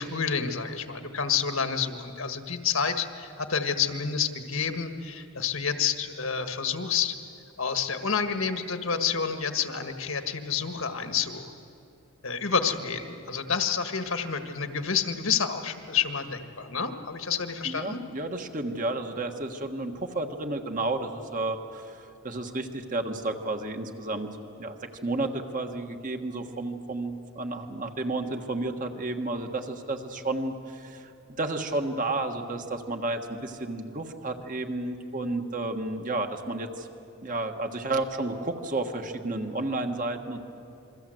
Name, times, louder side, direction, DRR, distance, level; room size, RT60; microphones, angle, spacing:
voice 1, 0.0-7.1 7.6-11.5 12.2-18.0, left 6 dB, 70° left, 7 dB, 1.6 m, -29 dB
voice 2, 17.6-24.8 25.0-31.1 31.4-36.9 37.2-40.4, right 2 dB, 40° right, 5 dB, 1.6 m, -32 dB
27.0 x 23.0 x 7.9 m, 2.7 s
head